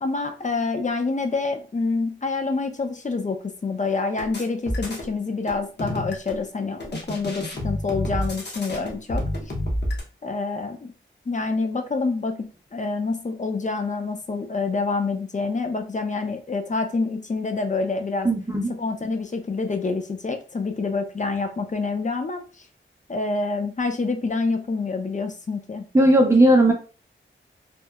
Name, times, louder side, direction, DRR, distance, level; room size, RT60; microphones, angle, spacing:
voice 1, 0.0-9.3 10.2-10.9 11.3-12.5 12.7-18.3 18.7-22.4 23.1-25.8, left 3 dB, 35° left, 6 dB, 0.5 m, -27 dB
sound 1, 4.2-5.1 5.5-6.4 6.8-10.0, left 1 dB, 55° left, 0.8 m, -29 dB
voice 2, 18.2-18.7 25.9-26.7, right 1 dB, 15° right, 1 dB, 0.5 m, -16 dB
2.9 x 2.0 x 2.3 m, 0.36 s
cardioid pair, 55°, 21 cm